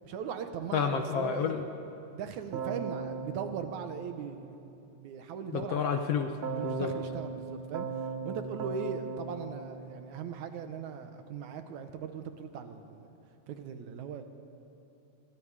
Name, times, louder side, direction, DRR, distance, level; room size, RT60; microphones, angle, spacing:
voice 1, 0.0-1.6 2.1-4.6 4.9-6.0 6.5-7.9 8.2-13.1 13.5-14.2, right 6 dB, 75° right, 7 dB, 2.5 m, -39 dB
voice 2, 0.7-1.6 5.5-6.3 6.6-6.9, left 7 dB, 65° left, 6 dB, 1.7 m, -30 dB
Keyboard (musical), 2.5-4.8 6.4-10.7, right 5 dB, 55° right, 1.9 m, -39 dB
26.5 x 23.0 x 4.9 m, 2.7 s
omnidirectional pair, 3.5 m